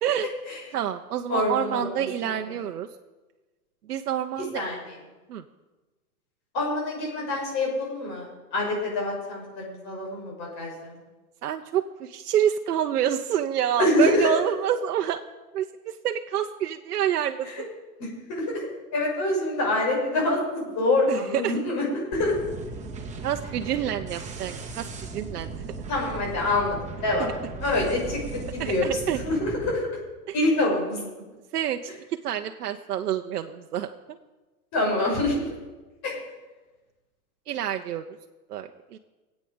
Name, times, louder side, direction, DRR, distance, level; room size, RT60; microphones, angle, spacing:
voice 1, 0.7-2.9 3.9-4.6 5.3-5.4 11.4-15.2 15.5-17.5 21.1-21.6 23.2-24.9 25.1-25.6 28.6-29.2 31.5-33.9 37.5-38.1 38.5-39.0, right 10 dB, 85° right, 5 dB, 0.8 m, -28 dB
voice 2, 1.3-2.4 4.5-4.8 6.5-11.0 13.8-14.3 17.4-17.6 18.0-21.8 22.1-22.3 25.9-27.3 27.6-28.2 28.5-29.0 29.2-29.8 30.3-31.0 34.7-35.5 36.0-36.1, left 2 dB, 35° left, -2 dB, 6.3 m, -26 dB
sound 1, 22.1-29.7, right 4 dB, 15° right, 1.9 m, -37 dB
23.5 x 8.5 x 5.1 m, 1.2 s
hypercardioid pair, 125°, 45 cm